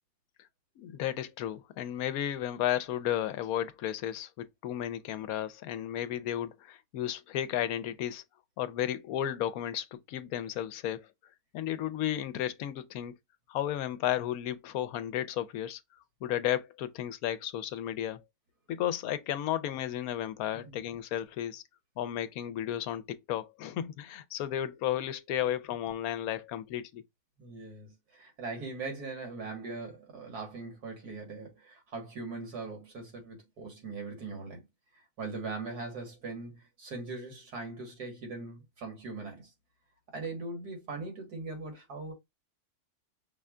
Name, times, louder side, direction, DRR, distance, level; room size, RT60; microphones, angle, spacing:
voice 1, 0.8-8.2 8.6-11.1 11.5-13.1 13.5-15.8 16.2-18.2 18.7-21.6 22.0-27.0, left 11 dB, 75° left, 1.0 m, -33 dB
voice 2, 27.4-34.7 34.9-39.5 40.1-42.1, right 3 dB, 90° right, 2.2 m, -40 dB
5.5 x 2.2 x 3.6 m
omnidirectional pair, 1.6 m